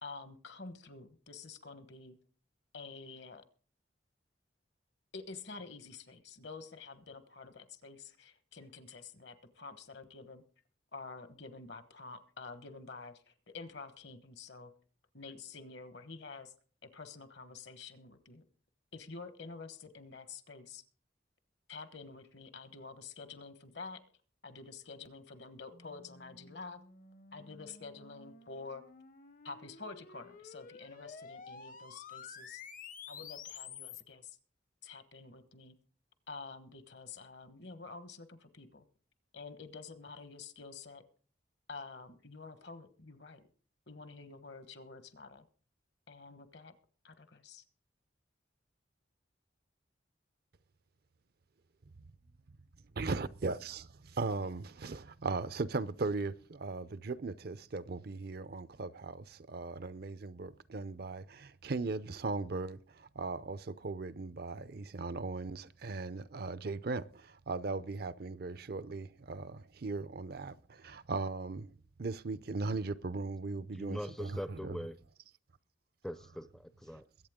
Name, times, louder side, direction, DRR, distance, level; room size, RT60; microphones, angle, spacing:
voice 1, 0.0-2.2 2.7-3.4 5.1-10.4 10.9-14.7 15.1-16.5 16.8-18.4 18.9-20.8 21.7-24.0 24.4-26.8 27.3-28.8 29.4-32.6 33.1-34.4 34.8-35.7 36.3-38.8 39.3-41.0 41.7-43.4 43.9-45.5 46.1-46.7 47.0-47.6, left 4 dB, 65° left, 1.3 m, -48 dB
sound 1, 25.7-34.0, left 6 dB, 45° left, 0.8 m, -51 dB
voice 2, 53.0-71.7 72.0-74.8, right 3 dB, 55° right, 0.6 m, -38 dB
voice 3, 73.7-75.0 76.0-77.0, equal, 5° left, 0.5 m, -42 dB
22.5 x 8.4 x 3.7 m
head